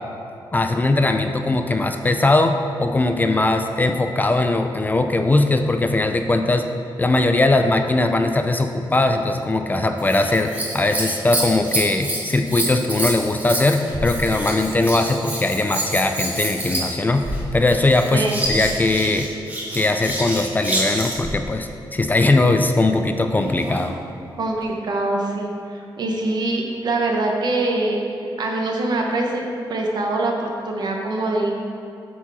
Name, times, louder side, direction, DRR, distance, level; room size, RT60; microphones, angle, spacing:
voice 1, 0.5-6.7 7.0-17.2 17.5-19.3 19.7-24.0, left 2 dB, 20° left, 6 dB, 0.4 m, -20 dB
Scissors, 10.0-21.3 23.3-23.9 24.6-24.7, right 1 dB, 20° right, 1.6 m, -27 dB
voice 2, 18.1-18.4 24.4-28.0 28.4-31.5, right 2 dB, 55° right, 1 dB, 1.1 m, -24 dB
8.1 x 4.7 x 5.7 m, 2.6 s
wide cardioid pair, 135°, 8 cm